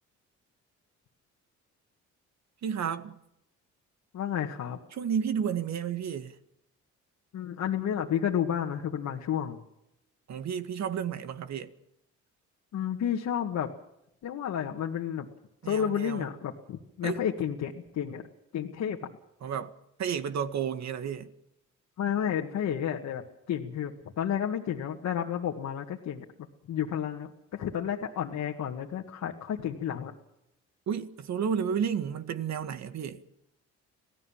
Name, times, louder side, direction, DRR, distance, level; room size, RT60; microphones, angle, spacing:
voice 1, 2.6-3.2 4.9-6.4 10.3-11.7 15.6-16.3 17.0-17.2 19.4-21.3 30.9-33.2, right 7 dB, 65° right, 2.0 m, -32 dB
voice 2, 4.1-4.8 7.3-9.6 12.7-13.7 14.2-15.3 15.6-18.3 18.5-19.0 22.0-26.2 26.7-30.1, left 9 dB, 70° left, 2.0 m, -31 dB
26.5 x 17.0 x 7.4 m
cardioid pair, 90°, 30 cm